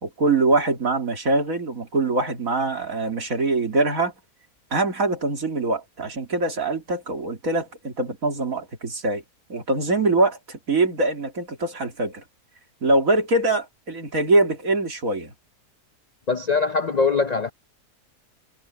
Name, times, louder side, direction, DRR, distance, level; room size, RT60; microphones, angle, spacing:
voice 1, 0.0-4.1 4.7-9.2 9.5-12.2 12.8-15.3, right 2 dB, 60° right, 3.3 m, -23 dB
voice 2, 16.3-17.5, left 4 dB, 60° left, 0.4 m, -22 dB
omnidirectional pair, 1.7 m